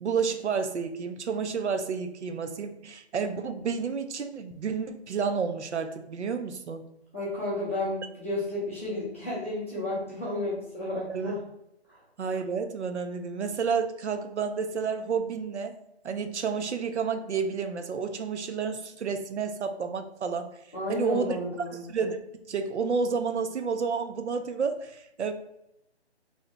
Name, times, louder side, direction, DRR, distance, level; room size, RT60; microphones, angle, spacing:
voice 1, 0.0-6.8 11.1-11.3 12.2-15.8 16.0-20.6 20.9-21.4 21.9-22.2 22.5-25.3, right 5 dB, 90° right, 8 dB, 0.5 m, -30 dB
voice 2, 7.1-11.4 11.9-12.0 20.7-21.8, left 1 dB, 15° left, -9 dB, 0.5 m, -32 dB
2.8 x 2.7 x 3.2 m, 0.84 s
figure-of-eight pair, 155°, 33 cm